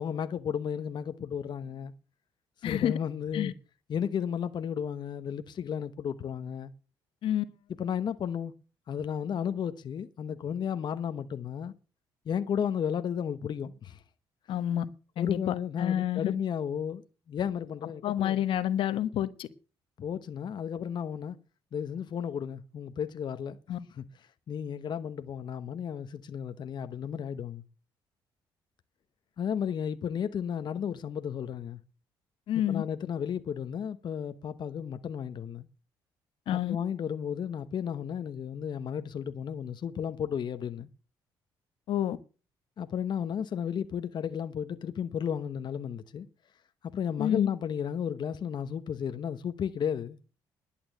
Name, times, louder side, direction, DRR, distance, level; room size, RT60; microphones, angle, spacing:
voice 1, 0.0-1.9 2.6-3.5 3.9-6.7 7.8-8.5 8.9-11.7 12.3-14.0 15.2-17.0 17.3-18.4 20.0-21.4 21.7-23.6 24.0-24.1 24.5-27.6 29.4-31.8 32.7-35.7 36.7-40.9 42.8-46.3 46.9-50.2, left 8 dB, 55° left, 1.0 m, -33 dB
voice 2, 2.6-3.0 3.3-3.5 7.2-7.4 14.5-14.8 15.2-16.4 18.0-19.5 23.7-23.8 32.5-32.8 36.5-36.8 41.9-42.2 47.2-47.5, left 11 dB, 75° left, 1.1 m, -29 dB
11.5 x 8.7 x 8.3 m
cardioid pair, 85°, 9 cm